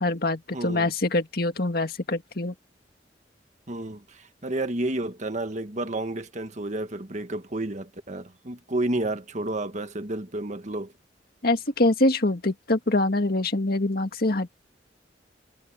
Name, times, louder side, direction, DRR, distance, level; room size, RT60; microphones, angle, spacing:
voice 1, 0.0-2.5 11.4-14.5, left 2 dB, 60° left, 2.0 m, -24 dB
voice 2, 0.5-0.9 3.7-10.9, right 2 dB, 45° right, 1.6 m, -31 dB
head